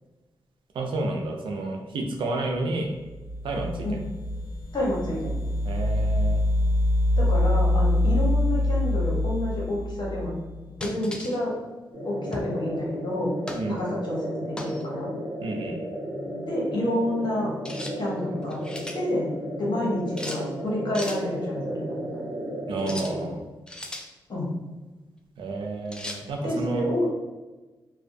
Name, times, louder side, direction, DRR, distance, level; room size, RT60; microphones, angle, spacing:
voice 1, 0.7-2.9 3.4-4.0 5.6-6.4 13.5-13.8 15.4-15.7 22.7-23.4 25.4-26.8, right 2 dB, 85° right, 2 dB, 0.4 m, -30 dB
sound 1, 3.0-10.6, left 1 dB, 90° left, 0.6 m, -25 dB
voice 2, 4.7-5.4 7.2-10.3 10.8-11.6 12.0-13.3 13.7-15.1 16.5-17.5 17.9-18.6 18.9-19.3 19.6-22.0 24.3-24.6 26.4-27.1, left 1 dB, 60° left, -3 dB, 1.0 m, -29 dB
sound 2, 10.8-11.4 12.3-12.6 13.5-13.7 14.6-14.8 17.6-18.0 18.4-19.0 20.2-20.4 20.9-21.2 22.8-23.2 23.7-24.1 25.9-26.2, left 1 dB, 10° left, 0.3 m, -37 dB
sound 3, 11.9-23.3, equal, 35° right, 0.9 m, -34 dB
2.5 x 2.1 x 2.6 m, 1.2 s
cardioid pair, 65°, 8 cm